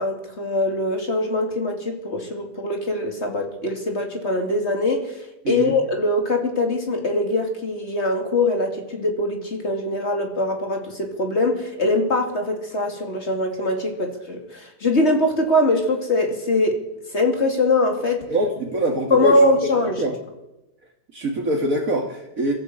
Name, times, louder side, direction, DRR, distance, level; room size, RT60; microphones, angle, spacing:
voice 1, 0.0-16.8 17.1-18.2 19.1-20.0, left 2 dB, 40° left, 3 dB, 2.9 m, -22 dB
voice 2, 18.3-19.4 20.0-20.1 21.1-22.5, right 1 dB, 50° right, -1 dB, 2.5 m, -23 dB
23.5 x 14.5 x 8.1 m, 0.95 s
omnidirectional pair, 1.8 m